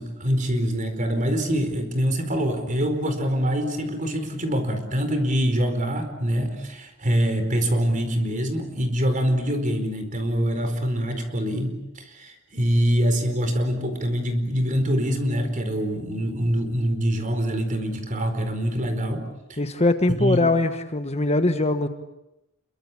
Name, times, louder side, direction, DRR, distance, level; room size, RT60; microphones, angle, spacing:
voice 1, 0.0-19.2 19.5-19.6 20.2-20.4, equal, 35° right, 7 dB, 4.6 m, -24 dB
voice 2, 19.6-21.9, left 2 dB, 30° left, 9 dB, 1.3 m, -22 dB
27.5 x 23.5 x 8.6 m, 0.89 s
head